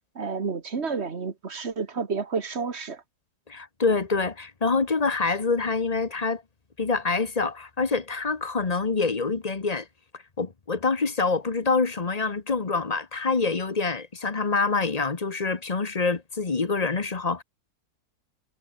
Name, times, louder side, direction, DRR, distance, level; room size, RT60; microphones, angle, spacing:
voice 1, 0.2-3.0, right 5 dB, 45° right, 1.8 m, -30 dB
voice 2, 3.5-6.4 6.8-9.9 10.4-17.4, left 4 dB, 30° left, 1.1 m, -26 dB
omnidirectional pair, 1.6 m